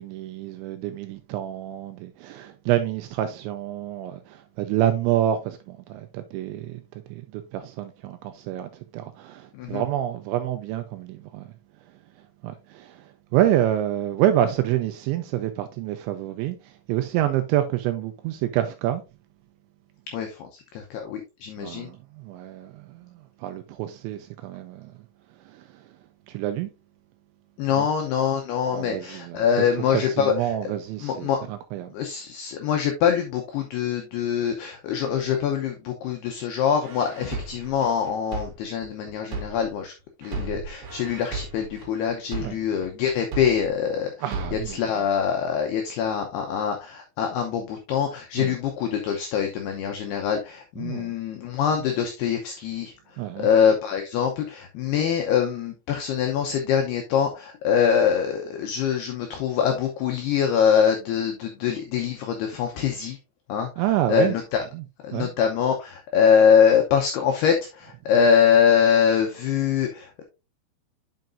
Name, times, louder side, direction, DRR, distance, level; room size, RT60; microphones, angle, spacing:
voice 1, 0.0-6.8 7.1-11.5 12.4-19.0 21.6-24.9 25.5-25.9 26.3-26.7 27.7-27.9 28.7-31.9 42.4-42.6 44.2-44.9 48.4-48.6 50.8-51.1 53.2-53.5 63.8-64.4 64.7-64.8 65.1-65.3, right 12 dB, 80° right, 2.7 m, -28 dB
voice 2, 20.1-21.9 27.6-30.3 31.0-31.5 31.9-39.9 40.2-44.1 44.5-52.9 53.4-63.2 63.5-63.7 64.1-64.6 65.0-70.2, left 7 dB, 90° left, 2.3 m, -24 dB
sound 1, 36.8-39.8 40.2-43.8 44.2-44.8, right 3 dB, 55° right, 3.2 m, -35 dB
9.3 x 5.8 x 2.5 m
omnidirectional pair, 5.8 m